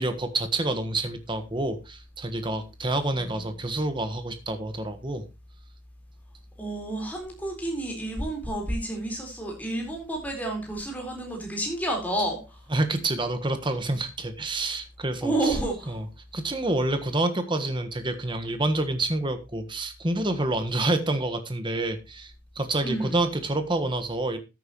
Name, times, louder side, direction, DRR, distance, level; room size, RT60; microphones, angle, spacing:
voice 1, 0.0-5.3 12.7-15.6 15.9-16.0 16.3-24.4, right 2 dB, 25° right, 1.4 m, -28 dB
voice 2, 3.1-3.5 6.6-12.7 15.2-16.0 22.8-23.2, right 1 dB, 10° left, 4.2 m, -30 dB
14.0 x 9.2 x 3.0 m
head